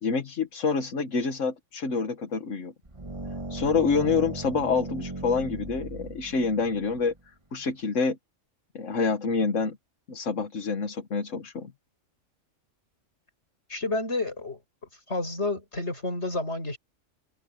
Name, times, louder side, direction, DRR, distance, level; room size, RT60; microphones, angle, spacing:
voice 1, 0.0-2.7 3.5-7.1 7.5-8.2 8.8-9.8 10.1-11.7, left 4 dB, 75° left, 1.7 m, -27 dB
sound 1, 2.8-7.2, right 2 dB, 25° right, 2.1 m, -37 dB
voice 2, 13.7-14.6 15.1-16.8, left 2 dB, 60° left, 7.0 m, -30 dB
omnidirectional pair, 1.3 m